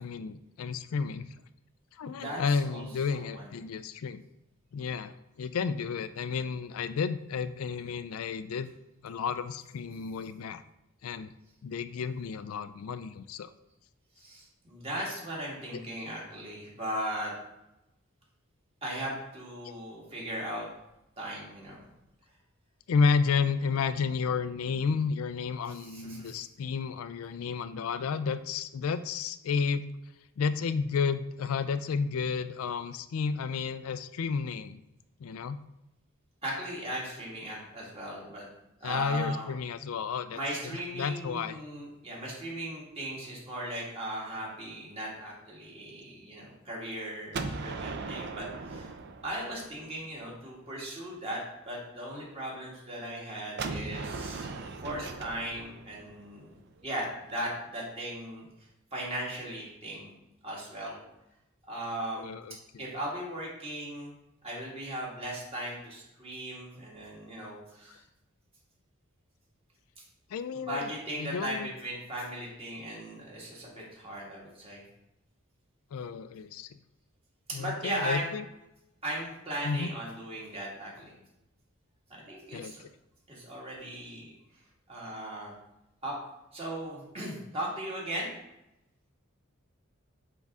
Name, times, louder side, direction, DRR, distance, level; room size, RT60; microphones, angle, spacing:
voice 1, 0.0-1.3 1.9-4.2 4.7-8.7 9.0-10.6 11.0-11.3 11.6-13.5 15.7-15.8 22.9-29.8 30.4-34.8 35.2-35.6 38.8-40.4 40.7-41.6 62.2-62.9 70.3-70.9 71.2-71.7 75.9-76.7 77.5-78.5 79.6-79.9 82.5-82.7, left 5 dB, 90° left, 12 dB, 0.4 m, -31 dB
voice 2, 2.0-2.8 3.1-3.5 14.2-17.3 18.8-20.7 21.2-21.9 25.6-26.4 36.4-38.5 38.8-39.5 40.3-48.9 49.2-54.5 54.8-56.5 56.8-58.5 58.9-60.1 60.4-61.0 61.7-62.3 62.8-64.2 64.4-68.0 70.0-70.1 70.6-74.8 77.5-78.3 79.0-81.1 82.1-82.8 83.3-84.3 84.9-85.6 86.0-86.2 86.5-88.3, right 1 dB, 30° right, -4 dB, 1.9 m, -38 dB
Gunshot gunfire, 47.3-50.2 53.6-57.4, right 3 dB, 55° right, 0.5 m, -39 dB
8.1 x 3.6 x 3.6 m, 0.90 s
head